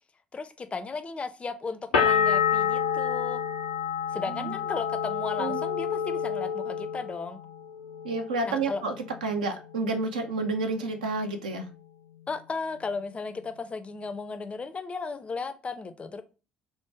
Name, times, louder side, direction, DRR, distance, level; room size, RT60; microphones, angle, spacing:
voice 1, 0.3-3.4 4.1-7.4 8.5-8.8 12.3-16.2, left 4 dB, 25° left, 0.4 m, -35 dB
sound 1, 1.9-7.6 7.9-8.6, left 7 dB, 80° left, 0.5 m, -28 dB
voice 2, 8.0-8.9 9.2-11.7, right 3 dB, 80° right, 0.4 m, -30 dB
3.2 x 2.1 x 3.2 m
figure-of-eight pair, 55°, 4 cm